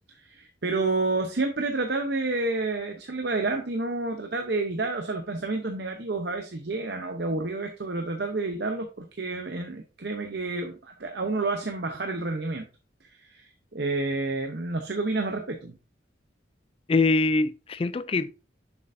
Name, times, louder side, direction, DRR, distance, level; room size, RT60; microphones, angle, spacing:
voice 1, 0.1-12.7 13.0-15.8, right 3 dB, 60° right, 0.8 m, -29 dB
voice 2, 16.9-18.3, left 3 dB, 30° left, 0.3 m, -23 dB
7.0 x 6.6 x 2.6 m
head